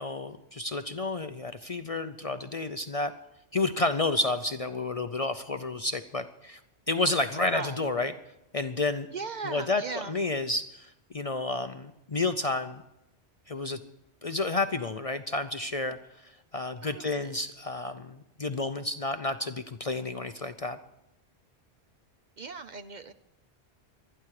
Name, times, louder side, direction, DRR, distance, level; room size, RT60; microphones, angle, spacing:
voice 1, 0.0-3.1 3.5-6.6 6.9-8.1 8.5-9.1 9.4-9.8 10.1-12.8 13.5-13.8 14.2-20.8, left 2 dB, 40° left, 9 dB, 0.6 m, -30 dB
voice 2, 7.5-7.9 9.1-10.2 16.8-17.4 22.4-23.1, right 4 dB, 50° right, 9 dB, 0.7 m, -38 dB
25.5 x 10.0 x 4.8 m, 0.88 s
omnidirectional pair, 1.1 m